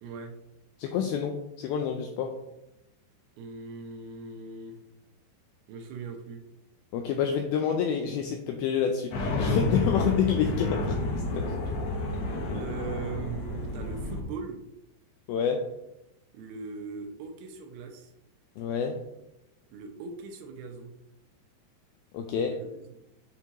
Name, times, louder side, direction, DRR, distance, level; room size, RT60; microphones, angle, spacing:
voice 1, 0.0-0.4 3.4-4.8 5.7-6.4 9.7-9.8 11.5-11.6 12.5-14.6 16.3-18.1 19.7-20.9 22.5-23.0, right 5 dB, 80° right, 4 dB, 2.6 m, -40 dB
voice 2, 0.8-2.4 6.9-11.0 11.3-11.6 15.3-15.7 18.6-19.0 22.1-22.6, left 7 dB, 85° left, 5 dB, 2.1 m, -28 dB
sound 1, 9.1-14.2, left 2 dB, 70° left, 2.7 m, -30 dB
8.1 x 4.5 x 2.9 m, 0.88 s
omnidirectional pair, 4.8 m